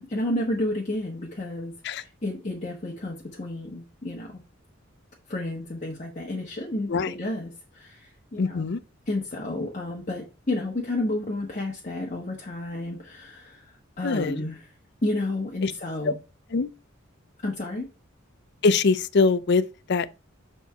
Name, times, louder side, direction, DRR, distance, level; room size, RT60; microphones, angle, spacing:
voice 1, 0.0-4.4 5.3-8.7 9.1-14.6 15.0-16.2 17.4-17.9, left 1 dB, 35° left, 1.2 m, -31 dB
voice 2, 8.4-8.8 14.0-14.4 15.6-15.7 16.5-16.7 18.6-20.1, left 4 dB, 55° left, 0.5 m, -23 dB
7.0 x 4.4 x 4.5 m
head